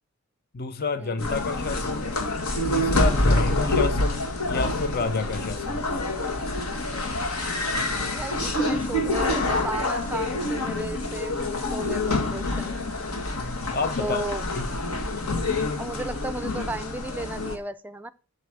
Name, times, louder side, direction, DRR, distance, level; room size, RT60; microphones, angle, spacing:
voice 1, 0.5-2.1 2.7-5.8 13.3-14.2 14.5-14.7, left 3 dB, 45° left, 0.6 m, -29 dB
sound 1, 1.2-17.6, left 2 dB, 75° left, 1.6 m, -27 dB
voice 2, 8.1-13.0 14.0-14.4 15.8-18.1, right 2 dB, 5° right, 0.4 m, -35 dB
8.2 x 5.3 x 7.5 m
head